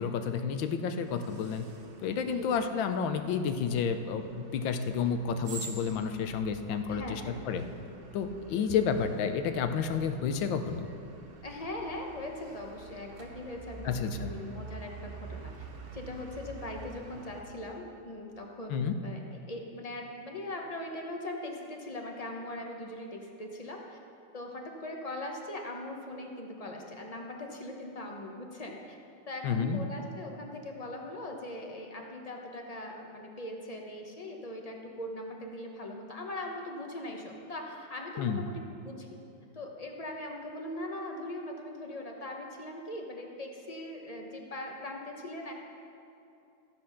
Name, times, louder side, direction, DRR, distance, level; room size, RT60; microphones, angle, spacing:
voice 1, 0.0-1.7 2.0-7.6 8.1-10.9 13.8-14.3 18.7-19.0 29.4-29.8 38.2-38.4, left 6 dB, 80° left, 8 dB, 1.4 m, -30 dB
sound 1, 1.0-17.4, right 3 dB, 55° right, 0.6 m, -48 dB
voice 2, 6.9-7.4 8.5-8.7 11.4-19.2 19.5-24.0 24.3-29.0 29.3-39.1 39.5-45.5, left 1 dB, 30° left, 1 dB, 0.7 m, -40 dB
13.5 x 7.6 x 5.7 m, 2.7 s
omnidirectional pair, 2.1 m